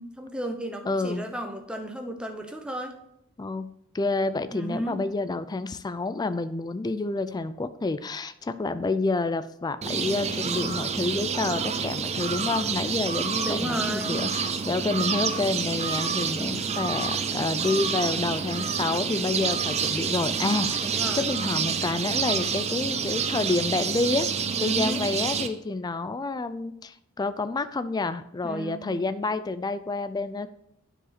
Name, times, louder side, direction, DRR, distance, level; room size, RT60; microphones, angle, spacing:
voice 1, 0.0-2.9 4.5-5.0 13.4-14.3 20.8-21.3 24.5-25.1 28.4-29.0, right 1 dB, 5° right, 4 dB, 0.8 m, -33 dB
voice 2, 0.8-1.3 3.4-3.7 3.9-20.9 21.1-30.5, left 3 dB, 20° left, 12 dB, 0.3 m, -29 dB
sound 1, 9.8-25.5, right 6 dB, 30° right, 0.5 m, -28 dB
9.8 x 4.9 x 4.1 m, 0.78 s
head